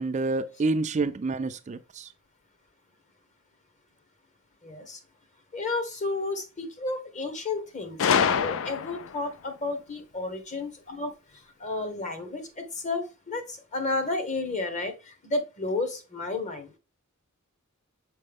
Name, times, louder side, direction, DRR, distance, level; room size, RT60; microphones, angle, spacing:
voice 1, 0.0-2.1, right 3 dB, 35° right, 0.4 m, -28 dB
voice 2, 4.6-5.0 5.5-16.7, left 3 dB, 35° left, 1.1 m, -32 dB
Gunshot gunfire, 8.0-9.2, left 7 dB, 65° left, 0.4 m, -25 dB
6.5 x 4.4 x 3.5 m
head